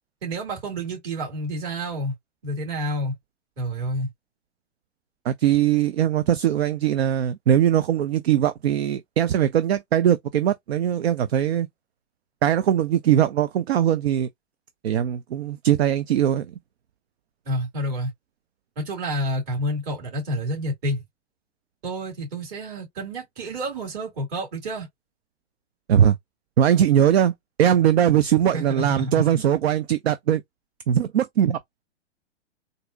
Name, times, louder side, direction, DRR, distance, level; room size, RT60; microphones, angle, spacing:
voice 1, 0.2-2.1 2.4-3.2 3.6-4.1 17.5-18.1 18.8-21.0 21.8-24.9 28.5-29.2, equal, 35° right, 2.7 m, -29 dB
voice 2, 5.2-11.7 12.4-14.3 14.8-16.5 25.9-26.2 26.6-27.3 27.6-30.4 30.9-31.6, right 10 dB, 60° right, 0.5 m, -20 dB
4.0 x 2.6 x 2.3 m
figure-of-eight pair, 110°, 35 cm